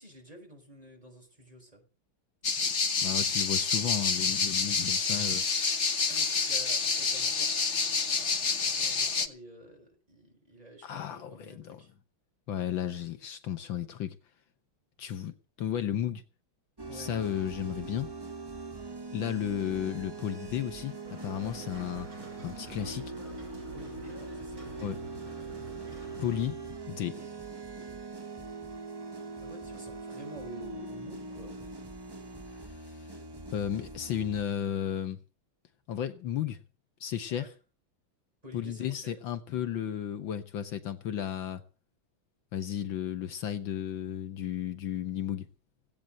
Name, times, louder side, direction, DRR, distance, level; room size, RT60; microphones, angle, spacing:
voice 1, 0.0-1.8 2.4-2.7 6.1-11.9 16.9-17.1 23.7-25.0 26.2-26.7 27.1-27.3 27.7-28.0 29.4-31.7 37.3-37.5 38.4-39.1, right 1 dB, 15° right, 6.2 m, -50 dB
sound 1, 2.4-9.3, left 5 dB, 40° left, 1.4 m, -28 dB
voice 2, 3.0-5.5 10.8-11.8 12.5-14.2 15.0-16.2 16.9-18.1 19.1-22.1 22.4-23.1 24.8-25.0 26.2-26.6 26.9-27.2 32.6-33.1 33.5-35.2 35.9-36.6 37.0-37.5 38.5-41.6 42.5-45.5, left 10 dB, 70° left, 1.8 m, -34 dB
sound 2, 16.8-34.4, right 3 dB, 35° right, 0.4 m, -42 dB
sound 3, 21.0-26.5, right 2 dB, 80° right, 7.3 m, -48 dB
18.0 x 8.9 x 7.7 m
omnidirectional pair, 2.2 m